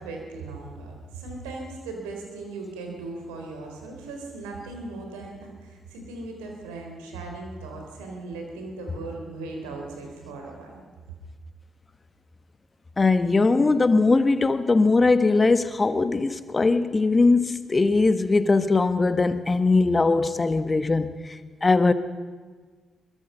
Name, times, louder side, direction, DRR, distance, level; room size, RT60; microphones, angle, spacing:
voice 1, 0.0-10.8, right 3 dB, 85° right, 2 dB, 3.8 m, -38 dB
voice 2, 13.0-21.9, left 3 dB, 35° left, 11 dB, 1.4 m, -20 dB
22.5 x 20.5 x 5.7 m, 1.5 s
hypercardioid pair, 40°, 0 cm